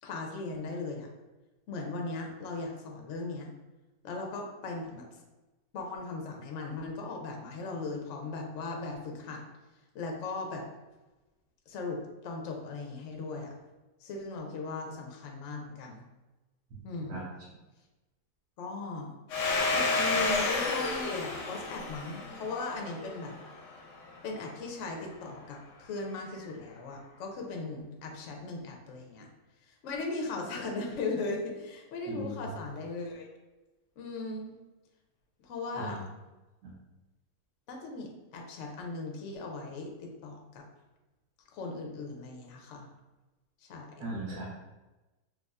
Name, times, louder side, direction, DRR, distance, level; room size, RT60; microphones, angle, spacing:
voice 1, 0.0-1.1 1.7-3.5 4.0-5.1 5.7-9.4 9.9-10.6 11.7-13.5 14.0-16.0 16.8-17.3 18.6-19.2 19.7-23.3 24.2-29.3 29.7-33.3 34.0-34.6 35.4-36.0 37.7-40.6 41.5-42.9 43.6-44.1, left 3 dB, 65° left, 1 dB, 0.7 m, -38 dB
Domestic sounds home sounds, 19.3-23.7, left 3 dB, 85° left, 1.2 m, -31 dB
voice 2, 44.0-44.4, right 2 dB, 75° right, -6 dB, 1.3 m, -37 dB
4.7 x 2.3 x 2.3 m, 1.1 s
omnidirectional pair, 1.8 m